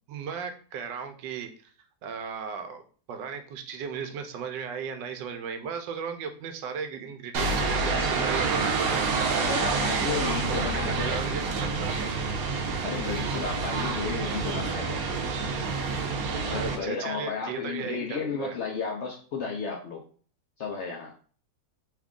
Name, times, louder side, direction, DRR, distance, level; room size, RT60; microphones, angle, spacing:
voice 1, 0.1-1.7 2.0-2.8 3.1-9.1 9.6-11.9 13.0-13.1 16.5-18.5, right 6 dB, 90° right, 7 dB, 1.2 m, -36 dB
sound 1, 7.3-16.8, right 4 dB, 65° right, 1.0 m, -28 dB
voice 2, 9.4-11.2 12.4-12.5 12.8-15.0 16.4-20.0 20.6-21.1, left 5 dB, 70° left, -1 dB, 0.6 m, -33 dB
3.3 x 2.3 x 3.6 m, 0.42 s
omnidirectional pair, 1.9 m